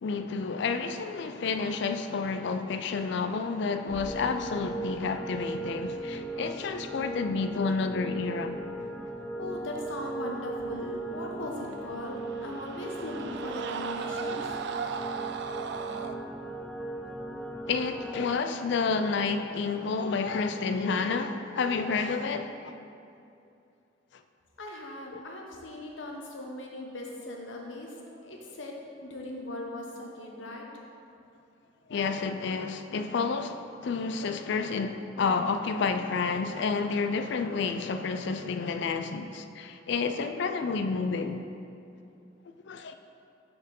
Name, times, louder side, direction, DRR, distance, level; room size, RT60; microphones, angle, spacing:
voice 1, 0.0-8.6 17.7-22.7 25.1-25.2 31.9-41.4 42.7-42.9, left 4 dB, 65° left, 0.4 m, -30 dB
sound 1, 3.9-18.3, right 2 dB, 5° left, 0.4 m, -38 dB
voice 2, 9.4-14.5 24.6-31.0, left 1 dB, 80° left, 1.0 m, -39 dB
sound 2, 11.7-16.2, right 6 dB, 65° right, 0.3 m, -37 dB
6.7 x 4.4 x 5.4 m
head